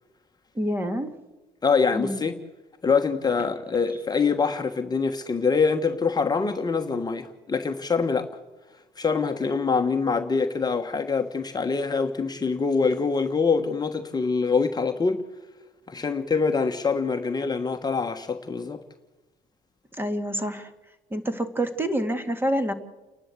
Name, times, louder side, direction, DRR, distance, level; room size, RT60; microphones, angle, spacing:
voice 1, 0.6-1.2 1.9-2.2 19.9-20.7 21.1-22.7, right 1 dB, 10° right, 2.0 m, -27 dB
voice 2, 1.6-2.4 2.8-8.3 9.0-15.2 15.9-18.8, left 5 dB, 25° left, 1.2 m, -24 dB
29.5 x 11.5 x 8.2 m
cardioid pair, 110°, 17 cm